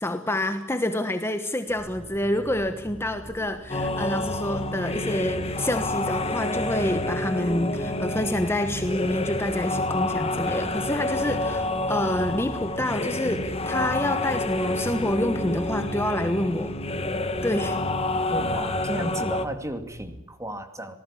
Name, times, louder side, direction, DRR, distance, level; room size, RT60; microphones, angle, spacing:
voice 1, 0.0-16.7 17.4-17.8, left 1 dB, 10° left, 7 dB, 1.2 m, -27 dB
sound 1, 1.7-20.2, equal, 65° right, 5.9 m, -43 dB
sound 2, 3.7-19.5, left 2 dB, 30° left, 1.6 m, -28 dB
voice 2, 18.3-21.0, right 1 dB, 15° right, 7 dB, 2.3 m, -34 dB
26.5 x 19.0 x 8.6 m, 0.89 s
head